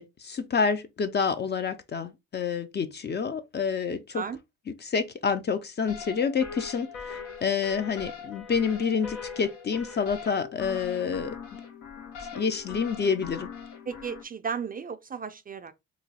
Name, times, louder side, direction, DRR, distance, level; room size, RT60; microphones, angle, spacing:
voice 1, 0.0-4.2 4.8-11.3 12.4-13.5, left 6 dB, 35° left, 0.5 m, -28 dB
sound 1, 5.9-14.2, left 6 dB, 85° left, 1.0 m, -41 dB
voice 2, 13.9-15.7, right 6 dB, 30° right, 0.4 m, -34 dB
3.0 x 2.3 x 4.0 m
cardioid pair, 90°, 30 cm